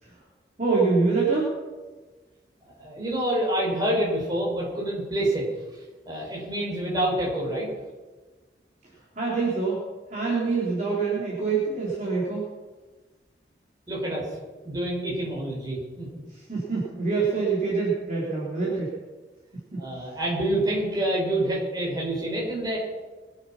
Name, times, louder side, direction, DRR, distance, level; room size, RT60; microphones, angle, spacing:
voice 1, 0.6-1.5 9.2-9.8 10.1-12.4 16.3-18.9 19.7-19.8, right 4 dB, 40° right, -6 dB, 3.9 m, -25 dB
voice 2, 2.8-5.5 6.1-7.7 13.9-14.3 14.6-16.1 19.8-22.8, right 1 dB, 20° right, -4 dB, 5.5 m, -27 dB
22.5 x 8.9 x 5.9 m, 1.3 s
head